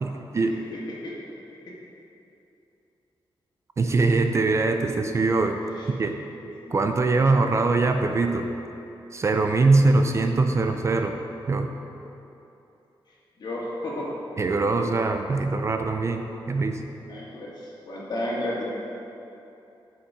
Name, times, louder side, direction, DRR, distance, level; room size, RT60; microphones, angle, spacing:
voice 1, 0.0-0.6 3.8-5.6 5.9-6.2 6.7-8.5 9.1-11.1 11.5-11.7 14.4-16.8, right 3 dB, 30° right, 6 dB, 0.4 m, -22 dB
voice 2, 6.4-6.7 13.4-14.1 17.1-18.6, left 1 dB, 55° left, -5 dB, 2.1 m, -32 dB
9.8 x 5.7 x 5.1 m, 2.9 s
wide cardioid pair, 160°, 9 cm